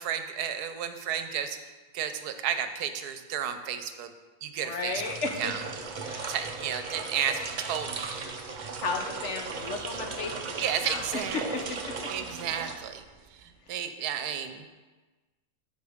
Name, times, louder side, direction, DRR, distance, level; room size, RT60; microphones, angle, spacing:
voice 1, 0.0-4.1 4.4-5.0 5.4-5.6 6.3-8.1 10.6-11.4 12.1-13.0 13.3-14.6, right 8 dB, 90° right, 9 dB, 1.2 m, -32 dB
voice 2, 4.6-5.5 6.0-6.4 8.5-10.3 10.8-11.2 11.5-11.6, left 4 dB, 60° left, 3 dB, 0.9 m, -34 dB
sound 1, 4.9-13.3, right 4 dB, 60° right, 0.4 m, -37 dB
12.5 x 4.8 x 3.5 m, 1.3 s
omnidirectional pair, 1.6 m